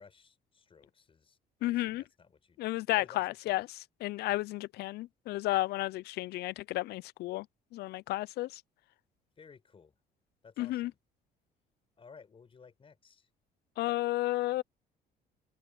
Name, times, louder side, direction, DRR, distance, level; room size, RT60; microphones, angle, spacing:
voice 1, 0.0-3.6 4.2-4.3 9.4-10.0 10.4-11.0 12.0-13.3, left 5 dB, 30° left, 5.2 m, -57 dB
voice 2, 1.6-2.0 2.6-7.5 7.7-8.6 10.6-10.9 13.8-14.6, left 17 dB, 75° left, 0.5 m, -32 dB
cardioid pair, 110°, 17 cm